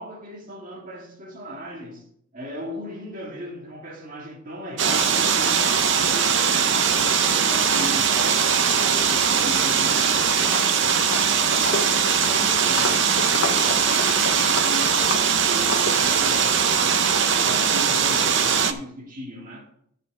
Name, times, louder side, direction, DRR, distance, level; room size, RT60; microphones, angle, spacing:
voice 1, 0.0-2.1 2.3-10.6 10.8-17.1 17.4-19.7, equal, 40° right, 2.1 m, -37 dB
sound 1, 4.8-18.7, right 7 dB, 60° right, 0.7 m, -20 dB
Walk footsteps, 9.8-10.1 10.4-16.4, left 4 dB, 65° left, 0.6 m, -32 dB
13.0 x 5.2 x 4.8 m
head